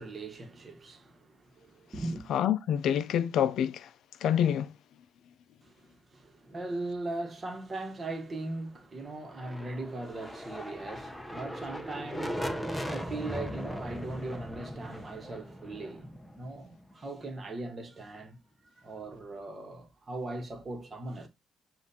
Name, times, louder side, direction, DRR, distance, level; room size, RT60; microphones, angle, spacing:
voice 1, 0.0-2.3 5.6-18.4 18.8-21.3, right 2 dB, 35° right, 1.2 m, -39 dB
voice 2, 2.3-3.9 4.2-4.7, left 9 dB, 75° left, 0.3 m, -27 dB
sound 1, 9.2-17.0, equal, 5° left, 0.7 m, -39 dB
7.3 x 2.5 x 2.7 m
cardioid pair, 90°, 0 cm